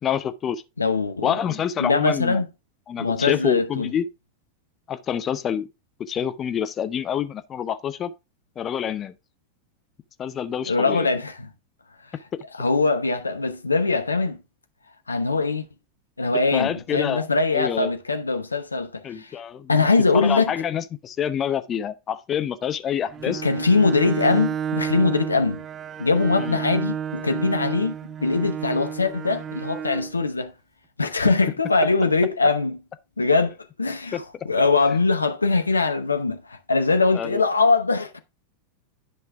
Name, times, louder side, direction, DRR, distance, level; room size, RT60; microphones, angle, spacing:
voice 1, 0.0-0.6 1.2-2.4 2.9-4.1 4.9-5.7 6.0-8.1 8.6-9.1 10.2-11.1 16.5-17.3 17.5-17.9 19.0-19.8 20.1-23.4 26.4-26.6 34.1-34.2 37.1-37.4, left 9 dB, 25° left, 0.8 m, -27 dB
voice 2, 0.8-1.4 1.8-2.4 3.0-3.9 10.7-11.5 12.6-14.4 15.1-15.6 16.2-19.3 19.7-20.5 23.3-25.6 26.0-27.9 28.2-30.5 31.0-32.8 33.2-38.2, left 3 dB, 80° left, 0.9 m, -22 dB
Bowed string instrument, 23.1-30.2, right 8 dB, 25° right, 0.4 m, -31 dB
10.5 x 5.5 x 3.5 m
figure-of-eight pair, 90°, 0 cm